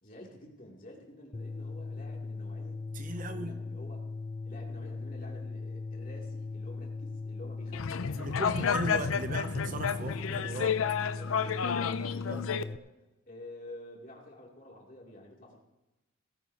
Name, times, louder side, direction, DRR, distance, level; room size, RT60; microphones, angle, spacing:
voice 1, 0.0-2.8 3.1-4.1 4.4-8.5 9.0-9.1 9.6-10.5 11.1-12.9 13.3-15.6, left 1 dB, 40° left, -2 dB, 2.8 m, -49 dB
sound 1, 1.3-12.8, left 3 dB, 20° left, 0.3 m, -39 dB
voice 2, 2.9-3.6 8.1-10.8 12.3-12.4, right 2 dB, 40° right, 8 dB, 0.7 m, -38 dB
sound 2, 7.7-12.6, left 7 dB, 80° left, 0.5 m, -31 dB
18.0 x 16.0 x 2.9 m, 1.0 s
head